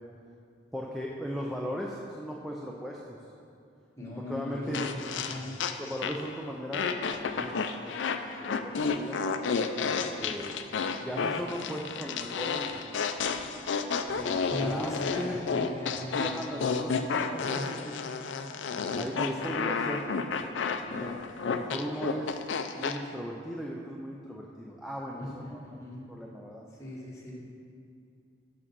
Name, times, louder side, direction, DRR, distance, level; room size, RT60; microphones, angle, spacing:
voice 1, 0.7-3.2 4.3-5.1 5.8-9.2 9.8-10.5 11.0-13.1 14.1-15.4 16.2-17.4 19.0-22.4 22.8-25.8 26.1-26.6, equal, ahead, -3 dB, 0.4 m, -38 dB
voice 2, 4.0-5.6 14.4-18.0 19.4-19.6 25.1-26.0 26.8-27.3, left 1 dB, 15° left, -5 dB, 1.4 m, -39 dB
sound 1, 4.7-6.3 6.7-23.0, left 5 dB, 75° left, 0.4 m, -31 dB
6.3 x 6.0 x 6.0 m, 2.5 s
head